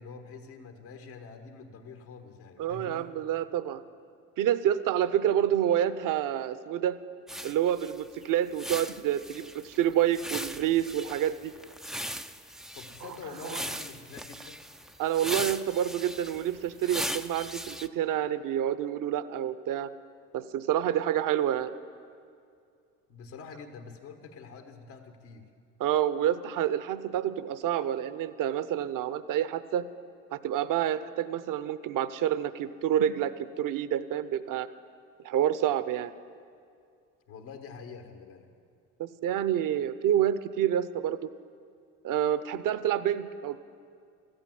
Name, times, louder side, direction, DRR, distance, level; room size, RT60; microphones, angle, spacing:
voice 1, 0.0-3.1 12.7-14.6 23.1-25.5 37.3-38.5, left 5 dB, 75° left, 4 dB, 1.5 m, -46 dB
voice 2, 2.6-3.8 4.4-7.0 7.4-11.5 13.4-13.6 15.0-19.9 20.3-21.7 25.8-29.8 30.3-34.7 35.2-36.1 39.0-41.3 42.0-43.6, right 10 dB, 55° right, 15 dB, 0.7 m, -28 dB
sound 1, 7.3-17.9, equal, ahead, 0.3 m, -39 dB
14.0 x 8.9 x 9.2 m, 2.3 s
hypercardioid pair, 65°, 39 cm